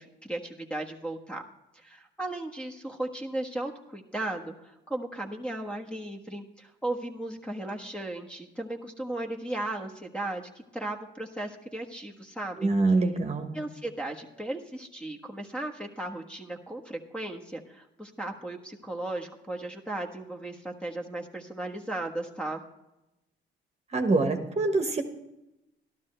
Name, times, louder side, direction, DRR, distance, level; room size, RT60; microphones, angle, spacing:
voice 1, 0.0-1.4 1.7-12.7 13.5-22.6, right 1 dB, 5° left, 3 dB, 1.4 m, -36 dB
voice 2, 12.6-13.6 23.9-25.0, right 3 dB, 35° right, 5 dB, 1.3 m, -25 dB
12.5 x 12.5 x 3.3 m, 0.93 s
cardioid pair, 90°, 20 cm